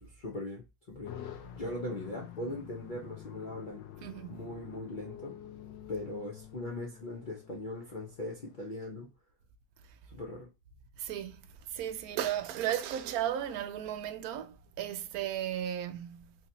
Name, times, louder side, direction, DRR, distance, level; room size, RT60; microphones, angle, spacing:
voice 1, 0.0-1.2 1.5-3.8 4.3-5.4 5.9-9.1 10.1-10.5, left 1 dB, 70° left, 0.4 m, -40 dB
sound 1, 1.0-8.8, left 10 dB, 90° left, 1.4 m, -48 dB
voice 2, 4.0-4.5 11.0-11.4 11.7-16.4, right 11 dB, 70° right, 0.9 m, -35 dB
3.8 x 2.8 x 2.7 m
omnidirectional pair, 1.9 m